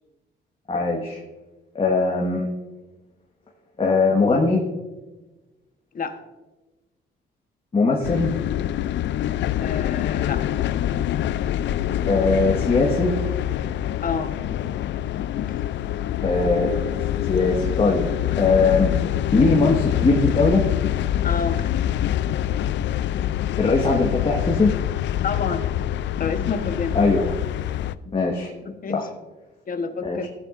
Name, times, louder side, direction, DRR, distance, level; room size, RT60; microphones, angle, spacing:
voice 1, 0.7-1.2 1.7-2.5 3.8-4.6 7.7-8.3 12.1-13.2 16.2-16.7 17.3-18.1 18.4-19.0 19.3-20.6 23.6-24.7 26.9-27.3 28.1-28.5 28.9-29.1 30.0-30.3, left 3 dB, 30° left, -1 dB, 1.5 m, -20 dB
sound 1, 8.0-28.0, left 12 dB, 65° left, 0.4 m, -25 dB
voice 2, 9.6-10.4 14.0-14.3 15.5-15.6 21.2-21.6 25.2-25.7 26.2-27.0 28.0-28.1 28.6-29.1 29.7-30.3, left 5 dB, 45° left, 7 dB, 1.2 m, -28 dB
14.5 x 9.4 x 2.5 m, 1.1 s
cardioid pair, 90°, 20 cm